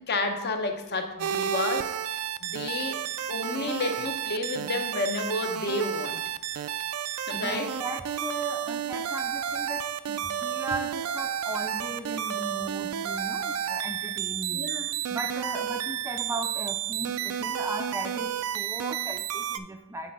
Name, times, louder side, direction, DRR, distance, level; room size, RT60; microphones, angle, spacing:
voice 1, 0.1-1.9 2.4-3.0 3.3-6.2 7.3-7.7 14.5-14.9, left 2 dB, 50° left, 5 dB, 0.8 m, -30 dB
sound 1, 1.2-19.6, right 9 dB, 80° right, 0.3 m, -31 dB
voice 2, 7.3-14.7 15.1-20.1, right 2 dB, 10° right, 5 dB, 0.4 m, -37 dB
8.3 x 3.3 x 5.4 m, 0.98 s
head